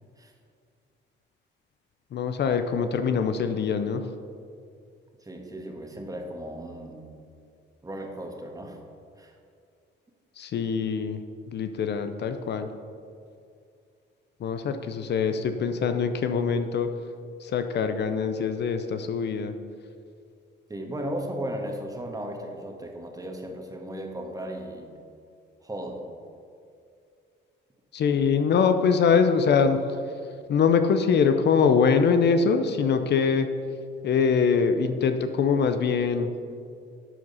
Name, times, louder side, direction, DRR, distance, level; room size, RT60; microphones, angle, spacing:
voice 1, 2.1-4.0 10.4-11.2 11.5-12.7 14.4-16.9 17.4-19.5 27.9-29.8 30.5-33.5 34.0-36.3, left 6 dB, 60° left, 8 dB, 0.6 m, -23 dB
voice 2, 5.2-7.2 7.8-8.8 9.2-9.3 20.7-24.9 25.6-26.0, right 1 dB, 15° right, 2 dB, 1.4 m, -36 dB
11.0 x 4.9 x 5.5 m, 2.4 s
cardioid pair, 90°, 20 cm